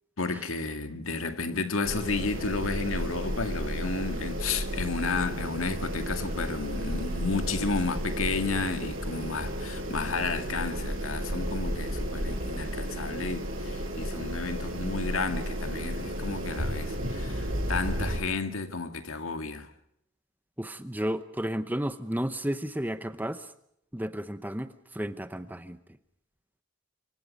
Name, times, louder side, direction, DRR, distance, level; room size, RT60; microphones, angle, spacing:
voice 1, 0.2-19.7, left 4 dB, 80° left, 2.0 m, -32 dB
sound 1, 1.8-18.2, equal, 75° right, 7.1 m, -33 dB
voice 2, 20.6-23.5 23.9-25.8, equal, 10° right, 0.8 m, -32 dB
26.5 x 24.5 x 5.3 m
head